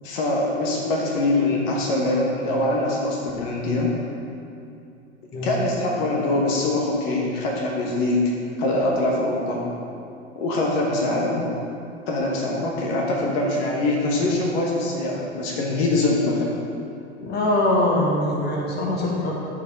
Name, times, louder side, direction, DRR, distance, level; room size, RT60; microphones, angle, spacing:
voice 1, 0.0-3.9 5.4-8.2 8.6-9.6 10.3-11.4 12.1-16.5, left 2 dB, 55° left, -2 dB, 1.5 m, -23 dB
voice 2, 17.2-19.3, left 1 dB, 25° left, -2 dB, 1.6 m, -22 dB
13.0 x 4.6 x 3.7 m, 2.6 s
figure-of-eight pair, 90°, 35 cm